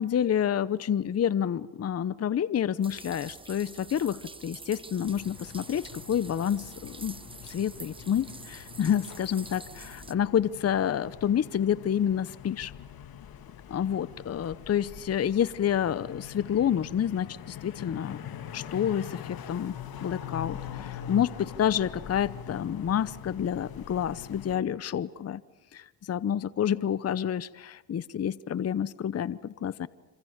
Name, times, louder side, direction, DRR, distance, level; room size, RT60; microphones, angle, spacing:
voice 1, 0.0-7.2 7.4-12.7 13.7-18.2 18.5-19.7 20.0-25.4 25.7-29.9, left 9 dB, 35° left, 18 dB, 0.8 m, -29 dB
sound 1, 2.8-10.1, right 3 dB, 10° right, 1.0 m, -46 dB
sound 2, 5.0-24.6, left 9 dB, 55° left, 2.1 m, -43 dB
27.0 x 26.5 x 7.3 m, 1.1 s
supercardioid pair, 75°, 42 cm